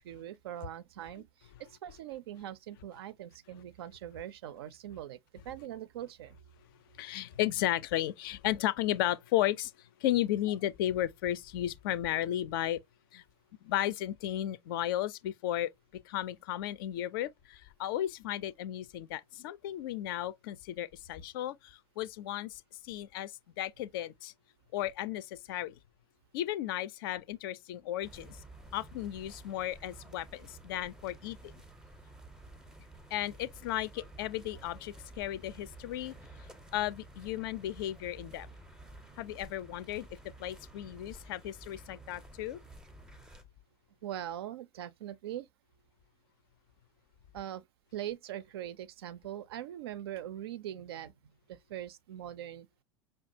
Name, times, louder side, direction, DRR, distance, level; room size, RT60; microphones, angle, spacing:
voice 1, 0.0-6.4 39.0-39.2 44.0-45.5 47.3-47.6 47.9-51.1 51.5-52.7, right 11 dB, 55° right, 0.4 m, -42 dB
voice 2, 6.9-12.8 13.1-13.2 13.6-24.3 24.7-25.8 26.3-28.4 28.7-31.5 33.1-36.5 36.7-38.5 39.2-40.1 40.4-42.6, left 13 dB, 50° left, 0.4 m, -34 dB
sound 1, 28.0-43.4, right 2 dB, 5° right, 0.6 m, -52 dB
5.3 x 2.3 x 2.7 m
figure-of-eight pair, 80°, 15 cm